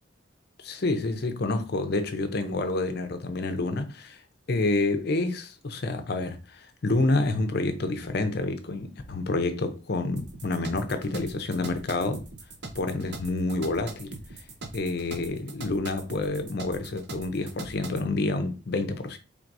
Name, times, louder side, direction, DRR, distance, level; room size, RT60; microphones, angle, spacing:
voice 1, 0.6-4.2 4.5-12.2 12.8-14.1 14.7-19.2, left 2 dB, 55° left, 0.6 m, -28 dB
sound 1, 10.2-18.1, right 3 dB, 55° right, 0.7 m, -41 dB
4.6 x 3.4 x 2.6 m
head